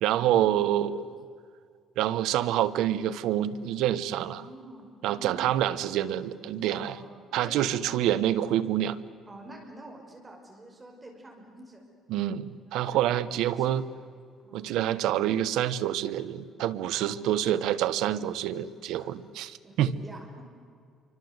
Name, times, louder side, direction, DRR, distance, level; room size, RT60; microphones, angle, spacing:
voice 1, 0.0-1.1 2.0-4.4 5.0-6.9 7.3-9.0 12.1-13.8 14.5-19.9, right 12 dB, 80° right, 14 dB, 1.1 m, -27 dB
voice 2, 4.1-5.6 6.7-8.3 8.8-11.8 12.6-14.0 14.4-15.0 16.9-17.8 18.9-19.1 19.6-20.4, right 2 dB, 15° right, 1 dB, 5.3 m, -48 dB
27.5 x 24.5 x 8.1 m, 2.2 s
cardioid pair, 160°, 0 cm